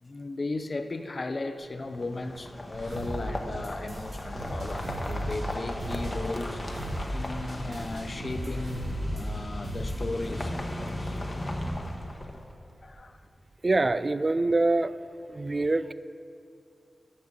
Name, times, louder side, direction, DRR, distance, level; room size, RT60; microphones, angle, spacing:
voice 1, 0.0-6.6 7.1-11.2 12.8-13.2, left 2 dB, 45° left, 8 dB, 0.6 m, -36 dB
sound 1, 1.8-12.7, left 1 dB, 25° left, 1.0 m, -37 dB
sound 2, 2.7-10.3, equal, 70° right, 2.6 m, -35 dB
voice 2, 13.6-15.0 15.3-15.9, right 2 dB, 35° right, 14 dB, 0.3 m, -25 dB
10.5 x 6.7 x 6.6 m, 2.5 s
wide cardioid pair, 85°, 0 cm